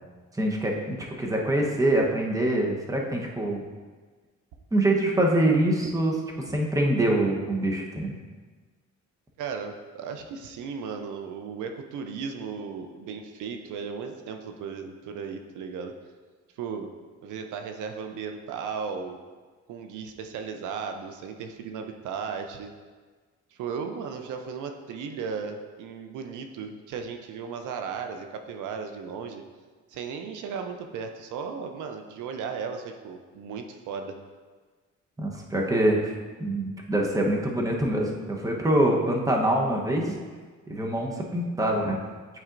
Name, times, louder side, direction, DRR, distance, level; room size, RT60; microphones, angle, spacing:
voice 1, 0.4-3.6 4.7-6.2 6.5-8.1 35.2-36.1 36.4-40.2 40.7-42.0, right 1 dB, 10° right, 0 dB, 0.9 m, -24 dB
voice 2, 9.4-15.9 16.5-16.9 17.2-19.2 19.7-22.7 23.5-29.4 29.9-34.2, right 6 dB, 85° right, 5 dB, 0.6 m, -36 dB
9.1 x 4.2 x 2.5 m, 1.4 s
cardioid pair, 90°, 30 cm